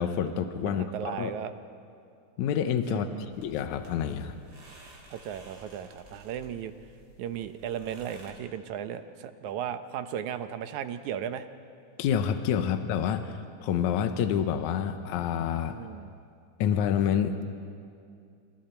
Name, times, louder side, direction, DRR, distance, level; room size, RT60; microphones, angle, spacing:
voice 1, 0.0-1.3 2.4-4.4 12.0-15.8 16.6-17.4, left 8 dB, 75° left, 8 dB, 2.2 m, -28 dB
voice 2, 0.7-1.5 2.9-3.3 5.1-6.7 7.2-11.5 15.7-16.1, right 9 dB, 75° right, 10 dB, 2.2 m, -36 dB
sound 1, 3.3-8.3, right 2 dB, 35° right, 4.5 m, -53 dB
28.5 x 27.0 x 4.5 m, 2.4 s
omnidirectional pair, 3.6 m